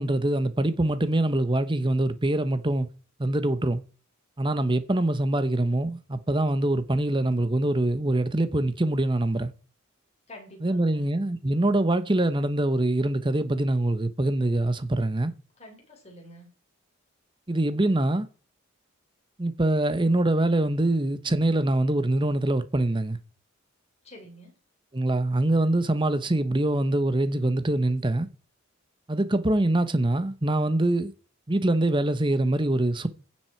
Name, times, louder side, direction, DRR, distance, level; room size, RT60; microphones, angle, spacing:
voice 1, 0.0-2.9 3.2-3.8 4.4-9.5 10.6-15.3 17.5-18.3 19.4-23.2 24.9-28.3 29.1-31.1 31.5-33.1, right 1 dB, 25° right, 0.9 m, -24 dB
voice 2, 10.3-11.1 15.6-16.5 24.0-24.6, equal, 30° left, 4.1 m, -47 dB
16.0 x 7.5 x 4.5 m
head